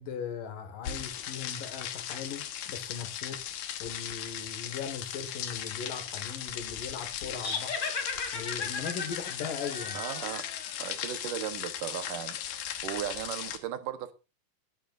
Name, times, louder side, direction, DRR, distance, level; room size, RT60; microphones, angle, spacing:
voice 1, 0.0-3.4 3.8-7.8 8.3-10.0, left 6 dB, 70° left, 3.3 m, -39 dB
sound 1, 0.8-13.6, left 10 dB, 90° left, 3.0 m, -38 dB
sound 2, 7.3-10.8, left 4 dB, 25° left, 1.9 m, -36 dB
voice 2, 9.9-10.5 10.8-14.1, right 10 dB, 75° right, 2.6 m, -37 dB
20.0 x 10.0 x 2.5 m
omnidirectional pair, 4.0 m